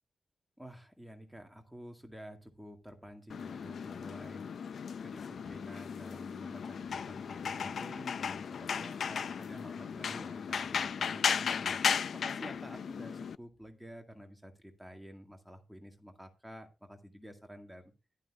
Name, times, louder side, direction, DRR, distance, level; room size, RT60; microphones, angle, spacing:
voice 1, 0.6-4.5 5.0-11.8 12.1-17.9, equal, ahead, 3 dB, 1.9 m, -50 dB
sound 1, 3.3-13.3, left 6 dB, 65° left, 0.5 m, -36 dB
14.0 x 12.0 x 2.4 m, 0.27 s
wide cardioid pair, 150°, 0 cm